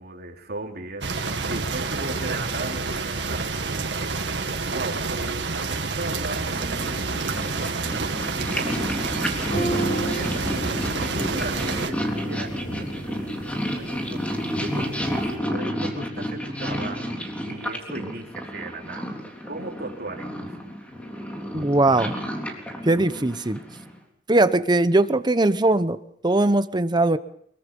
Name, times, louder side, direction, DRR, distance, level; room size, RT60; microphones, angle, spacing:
voice 1, 0.0-4.3 4.7-9.1 9.4-10.8 11.1-17.2 17.4-19.2 19.5-20.6, right 2 dB, 60° right, 1 dB, 3.5 m, -38 dB
sound 1, 1.0-11.9, right 4 dB, 85° right, 2.1 m, -28 dB
Purr, 6.3-24.0, equal, 10° left, 3.7 m, -31 dB
sound 2, 9.5-15.3, right 2 dB, 50° left, 6.8 m, -33 dB
voice 2, 21.5-22.2 22.8-23.6 24.3-27.2, right 2 dB, 25° right, 12 dB, 0.9 m, -20 dB
24.5 x 22.5 x 5.4 m, 0.66 s
head